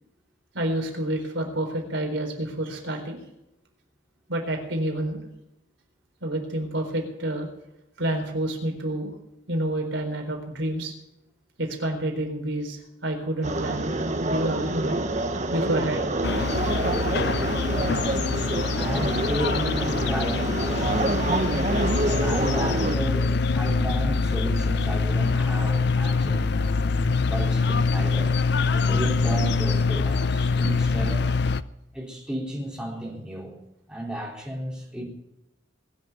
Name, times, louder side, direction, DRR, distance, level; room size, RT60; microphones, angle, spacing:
voice 1, 0.5-3.2 4.3-5.2 6.2-7.5 8.0-9.1 9.5-10.9 11.6-15.0 15.5-16.1, right 1 dB, 75° right, 3 dB, 4.1 m, -28 dB
sound 1, 13.4-23.0, right 2 dB, 40° right, 1.2 m, -27 dB
sound 2, 16.2-31.6, left 4 dB, 60° left, 0.6 m, -24 dB
voice 2, 17.7-21.2 21.9-23.3 23.5-26.5 27.2-28.4 28.7-31.2 31.9-33.6 33.9-35.0, right 1 dB, 5° right, -3 dB, 3.8 m, -33 dB
21.5 x 7.3 x 9.2 m, 0.85 s
head